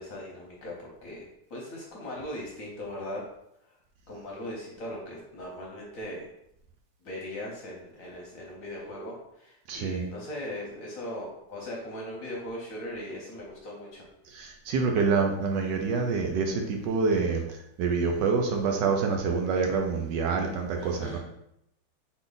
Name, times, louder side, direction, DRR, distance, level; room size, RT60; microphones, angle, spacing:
voice 1, 0.0-3.2 3.6-3.7 4.1-6.3 7.0-14.1 20.8-21.2, left 1 dB, 55° left, -3 dB, 1.0 m, -39 dB
voice 2, 9.7-10.1 14.3-21.2, right 4 dB, 75° right, 3 dB, 1.2 m, -27 dB
4.1 x 3.2 x 3.9 m, 0.79 s
omnidirectional pair, 2.1 m